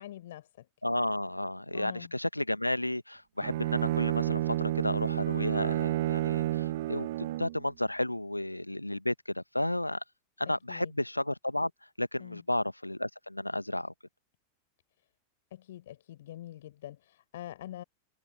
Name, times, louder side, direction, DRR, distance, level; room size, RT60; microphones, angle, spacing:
voice 1, 0.0-0.6 1.7-2.1 10.7-10.9 12.2-12.4 15.5-17.8, left 13 dB, 60° left, 4.7 m, -45 dB
voice 2, 0.8-10.0 10.4-11.7 12.0-13.9, left 1 dB, 85° left, 1.3 m, -32 dB
Bowed string instrument, 3.4-7.6, right 15 dB, 55° right, 1.5 m, -30 dB
figure-of-eight pair, 90°, 0 cm